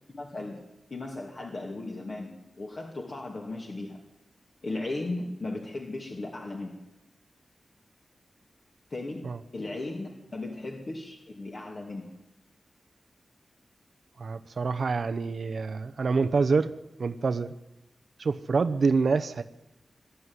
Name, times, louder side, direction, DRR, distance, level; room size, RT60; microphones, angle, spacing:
voice 1, 0.1-0.6 0.9-4.0 4.6-6.8 8.9-9.3 9.5-12.1, left 2 dB, 45° left, 0 dB, 2.6 m, -36 dB
voice 2, 14.2-16.7 17.0-17.5 18.2-19.4, right 4 dB, 60° right, 9 dB, 0.8 m, -26 dB
21.0 x 13.0 x 9.6 m, 0.99 s
wide cardioid pair, 140°, 0 cm